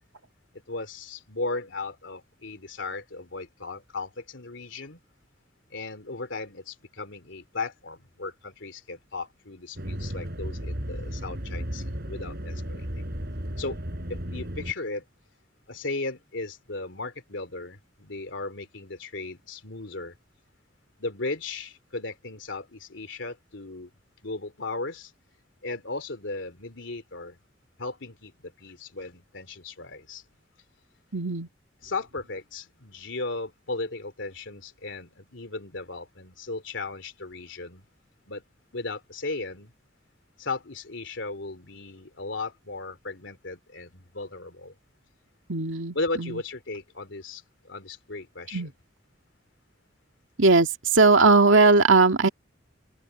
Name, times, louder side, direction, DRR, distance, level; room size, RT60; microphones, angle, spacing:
voice 1, 0.7-5.0 5.7-13.0 13.6-13.8 14.1-15.0 15.7-20.1 21.0-23.9 24.2-25.1 25.6-27.4 27.8-30.2 31.8-37.8 38.3-38.4 38.7-39.7 40.4-44.7 45.9-48.6, left 3 dB, 70° left, 3.1 m, -36 dB
sound 1, 9.8-14.7, equal, 55° right, 5.3 m, -34 dB
voice 2, 31.1-31.5 45.5-46.4 48.5-48.7 50.4-52.3, right 3 dB, 85° right, 2.1 m, -19 dB
open air
head